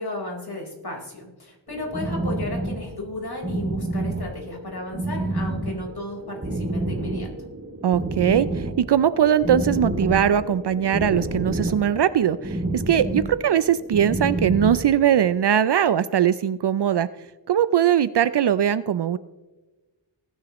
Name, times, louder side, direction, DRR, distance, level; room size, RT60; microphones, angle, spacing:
voice 1, 0.0-7.3, left 2 dB, 55° left, -1 dB, 4.4 m, -34 dB
sound 1, 1.7-15.3, right 2 dB, 25° right, 2.4 m, -29 dB
voice 2, 7.8-17.1 17.5-19.2, right 9 dB, 65° right, 15 dB, 0.5 m, -20 dB
20.0 x 10.0 x 3.0 m, 1.2 s
wide cardioid pair, 70°, 45 cm